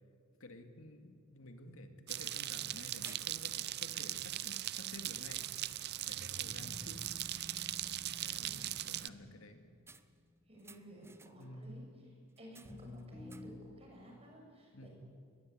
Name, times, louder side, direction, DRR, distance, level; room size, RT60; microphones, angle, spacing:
voice 1, 0.4-5.7 6.0-7.0 8.2-9.7 11.4-11.7 14.7-14.9, left 1 dB, 90° left, 6 dB, 2.3 m, -52 dB
sound 1, 1.2-1.3 1.7-1.8 2.5-2.7 3.0-3.8 4.5-4.7 5.1-5.9 6.3-6.5 6.7-7.2 9.9-11.7 12.3-13.8, right 4 dB, 10° right, 0.7 m, -59 dB
sound 2, 2.1-9.1, right 14 dB, 55° right, 0.6 m, -40 dB
sound 3, 6.4-11.5 12.6-13.5, left 1 dB, 15° left, 4.2 m, -53 dB
voice 2, 8.4-9.1 10.5-11.8 12.4-14.9, equal, 30° right, 0 dB, 7.1 m, -55 dB
22.0 x 20.5 x 9.1 m, 2.1 s
head